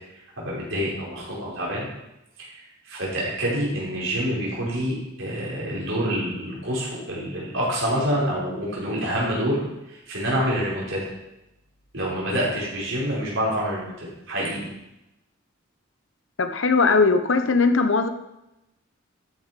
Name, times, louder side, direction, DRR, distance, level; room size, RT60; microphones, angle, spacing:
voice 1, 0.1-1.9 2.4-9.6 9.9-11.1 11.9-14.7, equal, 65° right, -5 dB, 5.4 m, -27 dB
voice 2, 16.4-18.1, left 4 dB, 65° left, 7 dB, 1.0 m, -19 dB
13.5 x 8.0 x 5.3 m, 0.91 s
head